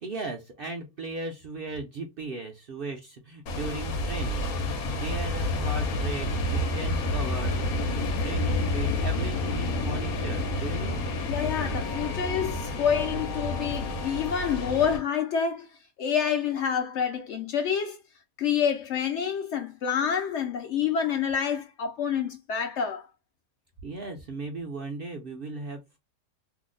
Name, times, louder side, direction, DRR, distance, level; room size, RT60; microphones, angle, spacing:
voice 1, 0.0-11.1 23.8-26.0, right 3 dB, 60° right, 0.6 m, -37 dB
sound 1, 3.5-15.0, left 2 dB, 85° left, 1.2 m, -29 dB
voice 2, 11.3-15.7 16.0-18.0 18.4-23.1, left 7 dB, 65° left, 0.7 m, -28 dB
2.8 x 2.0 x 3.7 m
omnidirectional pair, 1.5 m